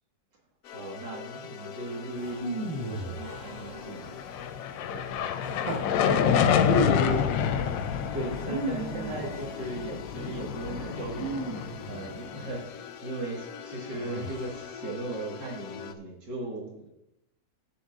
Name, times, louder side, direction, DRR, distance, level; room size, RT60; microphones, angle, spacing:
sound 1, 0.6-15.9, left 8 dB, 65° left, 0.9 m, -44 dB
voice 1, 0.7-4.2 4.9-5.0 6.4-7.3 8.1-16.9, right 2 dB, 70° right, -1 dB, 2.5 m, -37 dB
sound 2, 2.2-4.2 5.4-5.9 6.6-7.2 8.3-9.6 11.1-12.3 13.9-14.7, equal, 35° right, 1.8 m, -34 dB
sound 3, 4.1-12.5, left 8 dB, 85° left, 1.4 m, -28 dB
17.5 x 7.2 x 2.5 m, 0.85 s
omnidirectional pair, 1.9 m